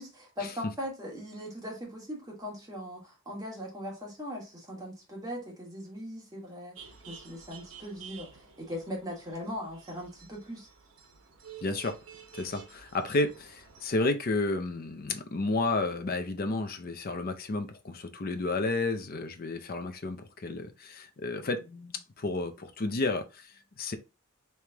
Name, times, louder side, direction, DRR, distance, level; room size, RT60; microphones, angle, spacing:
voice 1, 0.0-10.7, equal, 15° right, 1.5 m, -40 dB
sound 1, 6.8-13.9, right 7 dB, 75° right, 0.9 m, -51 dB
voice 2, 11.6-12.0 12.3-24.0, left 2 dB, 45° left, 0.5 m, -31 dB
3.3 x 3.1 x 3.4 m
head